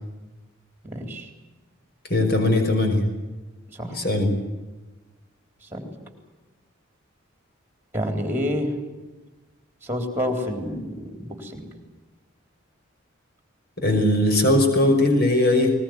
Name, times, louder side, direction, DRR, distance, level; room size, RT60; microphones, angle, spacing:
voice 1, 0.8-1.3 3.7-4.0 5.6-5.9 7.9-8.7 9.8-11.7, equal, 10° right, 5 dB, 3.7 m, -29 dB
voice 2, 2.1-3.0 3.8-4.3 13.8-15.7, left 1 dB, 50° left, 5 dB, 5.6 m, -19 dB
21.0 x 20.5 x 9.5 m, 1.2 s
head